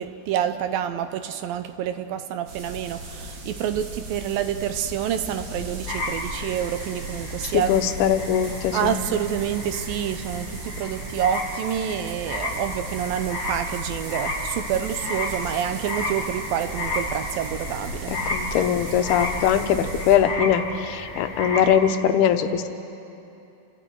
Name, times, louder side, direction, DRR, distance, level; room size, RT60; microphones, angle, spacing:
voice 1, 0.0-7.7 8.7-18.2, right 9 dB, 75° right, 2.4 m, -28 dB
sound 1, 2.5-20.2, right 1 dB, 60° right, 3.8 m, -36 dB
sound 2, 5.9-21.7, left 1 dB, 15° left, 4.0 m, -33 dB
voice 2, 7.4-9.0 18.3-22.7, left 9 dB, 85° left, 2.9 m, -21 dB
29.5 x 25.5 x 4.7 m
omnidirectional pair, 4.4 m